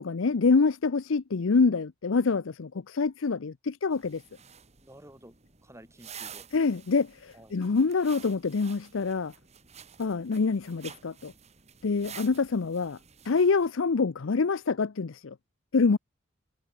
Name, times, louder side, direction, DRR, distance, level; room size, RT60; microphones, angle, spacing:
voice 1, 0.0-4.2 6.5-9.3 10.0-11.3 11.8-13.0 13.2-15.3 15.7-16.0, left 4 dB, 70° left, 0.6 m, -26 dB
sound 1, 3.9-13.7, right 8 dB, 30° right, 1.8 m, -50 dB
voice 2, 4.8-5.4 5.6-6.5 7.3-7.6, right 1 dB, 15° right, 3.9 m, -51 dB
head